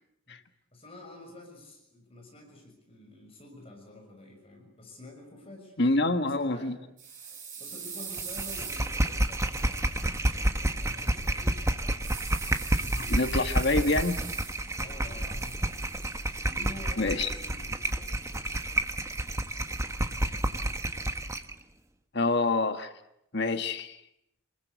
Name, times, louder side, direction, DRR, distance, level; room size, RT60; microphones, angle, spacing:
voice 1, 0.7-5.8 6.4-6.8 7.6-11.6 12.4-13.9 14.8-15.7 16.2-18.2, left 2 dB, 25° left, 2 dB, 6.4 m, -48 dB
voice 2, 5.8-6.7 13.1-14.2 17.0-17.3 22.1-22.9 23.3-24.0, left 2 dB, 55° left, 8 dB, 1.5 m, -26 dB
sound 1, 7.0-10.0 12.0-14.8 15.1-16.2, right 6 dB, 35° right, 6.6 m, -42 dB
sound 2, 8.1-21.5, right 1 dB, 15° right, 1.2 m, -30 dB
28.0 x 21.0 x 8.2 m, 0.80 s
head